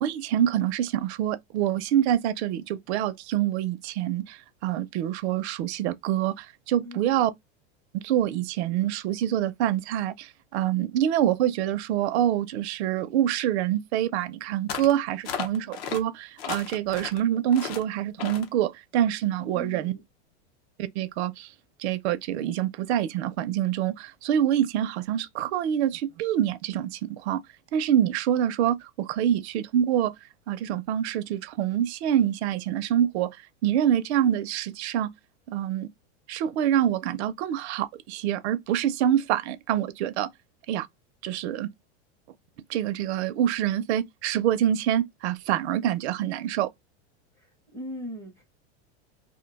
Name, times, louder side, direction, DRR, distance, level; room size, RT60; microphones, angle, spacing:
voice 1, 0.0-7.3 7.9-19.9 20.8-21.5 21.8-27.4 27.7-30.1 30.5-35.1 35.5-35.9 36.3-40.3 40.7-40.9 41.2-41.7 42.7-46.7, right 11 dB, 65° right, 0.5 m, -26 dB
voice 2, 6.8-7.2 19.4-20.0 47.4-48.4, left 1 dB, 10° left, 0.6 m, -40 dB
sound 1, 14.7-15.0 15.2-16.0 16.4-17.2 17.5-17.8 18.2-18.5, left 8 dB, 55° left, 0.7 m, -34 dB
2.5 x 2.2 x 3.9 m
supercardioid pair, 165°, 35 cm